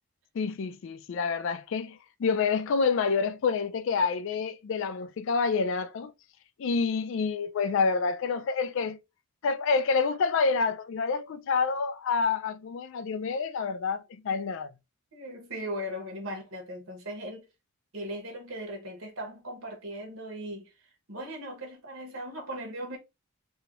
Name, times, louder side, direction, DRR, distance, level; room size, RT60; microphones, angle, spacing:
voice 1, 0.3-6.1 6.6-9.0 9.4-14.7, left 5 dB, 55° left, 0.3 m, -28 dB
voice 2, 15.1-17.5 17.9-20.7 21.1-23.0, equal, 65° right, 1.1 m, -38 dB
2.9 x 2.7 x 2.9 m
head